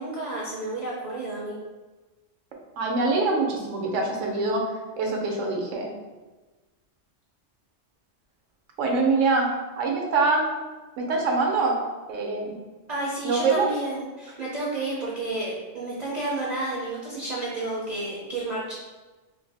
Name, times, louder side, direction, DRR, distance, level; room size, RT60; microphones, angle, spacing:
voice 1, 0.0-1.6 12.9-18.7, right 2 dB, 50° right, -6 dB, 0.5 m, -31 dB
voice 2, 2.8-4.6 5.0-5.9 8.8-9.5 9.8-10.5 11.0-11.8 12.1-12.5 13.2-13.7, right 3 dB, 90° right, 0 dB, 1.0 m, -24 dB
2.6 x 2.6 x 3.3 m, 1.2 s
omnidirectional pair, 1.3 m